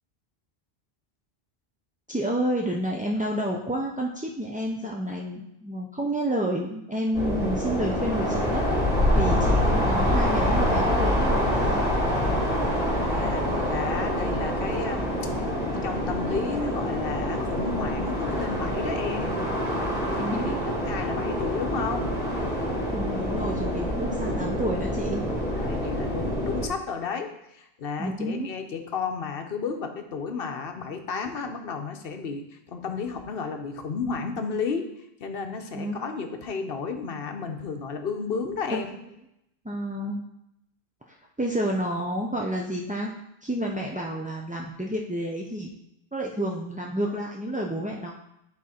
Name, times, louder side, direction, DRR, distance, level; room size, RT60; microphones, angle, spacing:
voice 1, 2.1-8.7 9.1-11.8 20.1-20.7 22.9-25.2 28.0-28.5 35.7-36.0 38.7-38.8 39.6-40.2 41.4-43.1 43.4-45.7 46.1-48.1, right 1 dB, 15° right, -1 dB, 0.3 m, -29 dB
sound 1, 7.1-26.7, equal, 20° left, 2.1 m, -26 dB
voice 2, 12.9-15.3 15.7-19.3 20.1-22.1 25.5-34.9 35.2-38.9, left 5 dB, 70° left, 5 dB, 0.9 m, -32 dB
8.6 x 4.2 x 4.2 m, 0.81 s
omnidirectional pair, 1.0 m